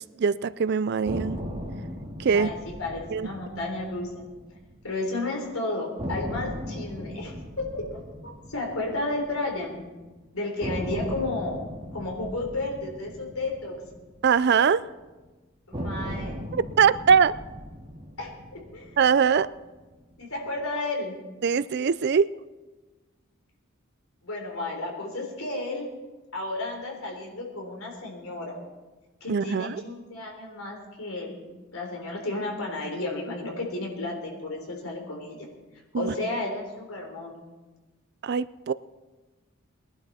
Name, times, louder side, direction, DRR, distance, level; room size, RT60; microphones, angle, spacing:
voice 1, 0.0-1.4 2.2-2.5 3.1-3.3 14.2-14.8 16.5-17.3 19.0-19.5 21.4-22.3 29.3-29.7 35.9-36.1 38.2-38.7, right 6 dB, 50° right, 17 dB, 0.4 m, -22 dB
sound 1, 1.1-5.1 5.4-5.5 6.0-10.1 10.6-15.0 15.7-20.1, equal, 25° right, 2.3 m, -38 dB
voice 2, 2.3-4.2 4.8-9.8 10.3-11.6 11.9-13.8 15.7-16.4 18.2-18.9 20.2-21.1 24.2-25.9 26.3-28.6 29.2-31.4 31.7-35.5 35.9-37.4, left 2 dB, 80° left, 1 dB, 3.8 m, -32 dB
20.5 x 11.5 x 4.2 m, 1.2 s
head